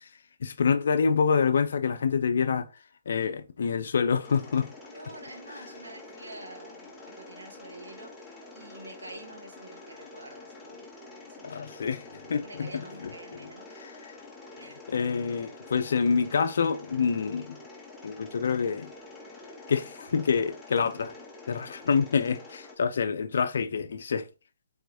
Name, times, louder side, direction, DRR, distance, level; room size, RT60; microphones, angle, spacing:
voice 1, 0.4-2.7 3.1-4.7 11.4-12.7 14.9-17.6 18.0-18.9 19.7-21.1 21.5-24.3, left 5 dB, 65° left, 0.5 m, -26 dB
Mechanisms, 4.2-22.8, left 2 dB, 5° left, 0.9 m, -47 dB
voice 2, 4.9-11.6 12.4-13.8 14.6-14.8, right 2 dB, 85° right, 1.6 m, -47 dB
4.5 x 3.5 x 2.6 m
figure-of-eight pair, 140°, 0 cm